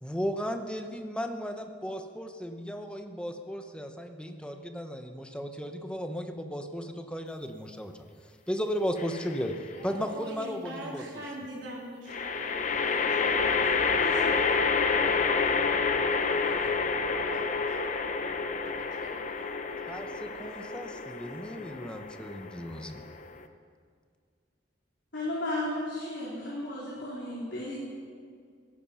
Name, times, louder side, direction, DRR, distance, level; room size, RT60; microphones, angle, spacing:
voice 1, 0.0-8.0 8.5-9.5 9.8-11.0 19.9-23.0, equal, 5° left, 5 dB, 1.0 m, -35 dB
sound 1, 9.0-9.6 12.1-23.4, left 4 dB, 45° left, 0.9 m, -29 dB
voice 2, 9.7-21.4, right 1 dB, 80° right, -3 dB, 3.9 m, -46 dB
voice 3, 25.1-27.7, left 1 dB, 75° left, -7 dB, 3.9 m, -34 dB
17.0 x 13.5 x 5.8 m, 2.1 s
head